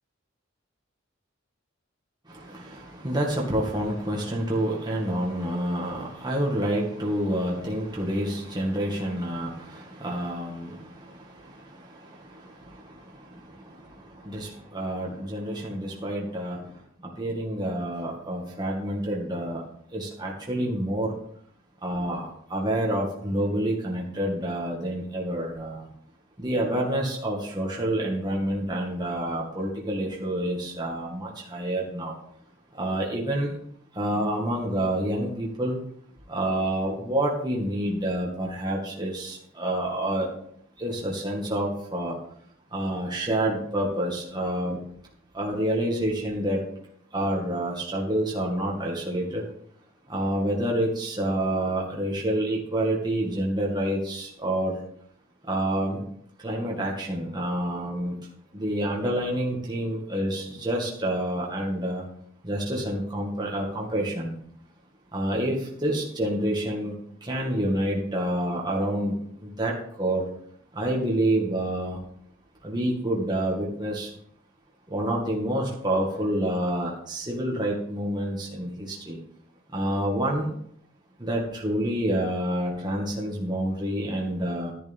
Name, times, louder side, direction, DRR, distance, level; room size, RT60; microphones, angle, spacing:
voice 1, 2.3-19.6 19.9-21.1 21.8-25.9 26.4-32.1 32.7-33.6 33.9-35.8 36.3-40.3 40.8-42.2 42.7-44.8 45.3-46.6 47.1-49.5 50.1-54.8 55.4-56.0 56.4-58.2 58.5-62.0 62.4-64.4 65.1-66.9 67.2-70.3 70.7-72.0 72.6-74.1 74.9-79.2 79.7-80.5 81.2-84.7, right 1 dB, 20° right, -3 dB, 1.9 m, -28 dB
11.5 x 10.5 x 3.6 m, 0.66 s
head